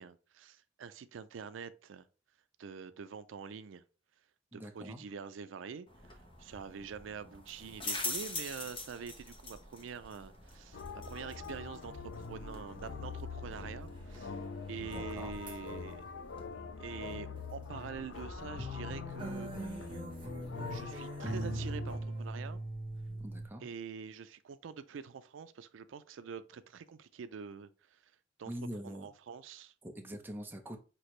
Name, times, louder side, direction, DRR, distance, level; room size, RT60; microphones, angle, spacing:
voice 1, 0.0-2.1 2.6-3.8 4.5-6.1 6.4-14.4 14.7-16.0 16.8-19.9 20.7-22.6 23.6-28.0 28.4-28.5 28.8-29.7, right 6 dB, 90° right, 0.4 m, -46 dB
voice 2, 4.5-5.0 14.8-15.3 23.2-23.6 28.5-29.1 29.8-30.8, equal, 10° right, 0.7 m, -44 dB
sound 1, 5.9-16.5, left 2 dB, 30° left, 1.1 m, -45 dB
sound 2, 9.4-10.0 10.4-10.5 10.9-12.0 12.3-14.4 14.8-16.3 16.8-17.0 17.4-17.6 17.9-23.5, right 1 dB, 25° right, 1.2 m, -42 dB
sound 3, 10.7-22.0, left 5 dB, 70° left, 0.5 m, -44 dB
6.1 x 2.8 x 3.1 m
head